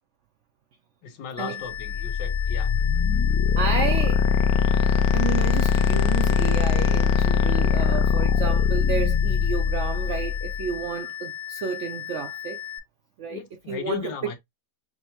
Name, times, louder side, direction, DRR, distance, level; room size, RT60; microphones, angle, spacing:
voice 1, 1.0-2.7 13.3-14.4, left 7 dB, 85° left, 1.5 m, -35 dB
sound 1, 1.4-12.8, left 10 dB, 5° left, 0.6 m, -37 dB
sound 2, 1.8-10.7, left 7 dB, 70° left, 0.9 m, -22 dB
voice 2, 3.6-4.3 5.1-12.6 13.2-13.4 13.7-14.1, right 6 dB, 70° right, 0.6 m, -31 dB
6.0 x 2.2 x 2.8 m
omnidirectional pair, 1.9 m